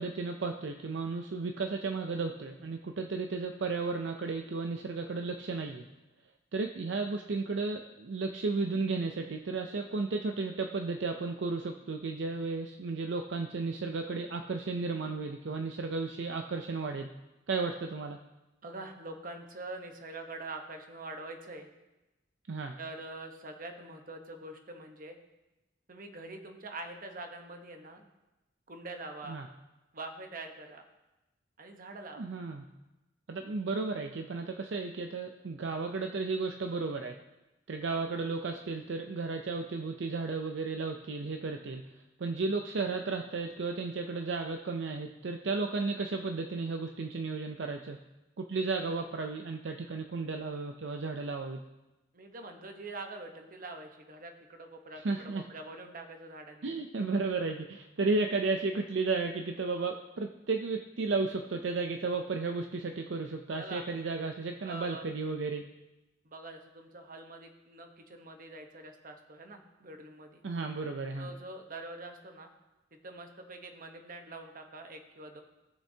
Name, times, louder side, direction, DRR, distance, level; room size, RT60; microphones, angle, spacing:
voice 1, 0.0-5.8 6.5-17.1 17.5-18.2 22.5-22.8 29.3-29.5 32.2-32.6 33.3-37.2 37.7-41.8 42.2-48.0 48.4-51.6 55.0-55.4 56.6-65.6 70.4-71.3, right 3 dB, 70° right, 4 dB, 0.5 m, -33 dB
voice 2, 18.6-21.7 22.8-25.2 25.9-28.1 28.7-29.4 29.9-30.8 31.6-32.3 52.1-56.7 63.5-63.8 64.6-65.1 66.2-70.4 71.2-72.5 72.9-75.4, right 2 dB, 45° right, 4 dB, 1.1 m, -44 dB
17.0 x 6.8 x 2.8 m, 1.0 s
head